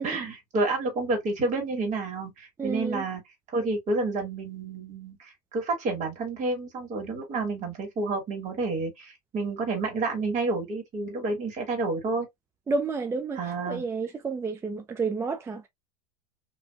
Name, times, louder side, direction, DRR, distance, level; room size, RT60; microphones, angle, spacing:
voice 1, 0.0-3.2 3.5-12.3 13.3-13.8, right 3 dB, 35° right, 1.8 m, -29 dB
voice 2, 2.6-3.0 12.7-13.4 13.7-15.7, right 4 dB, 10° right, 0.4 m, -30 dB
2.8 x 2.6 x 2.3 m
hypercardioid pair, 105°, 21 cm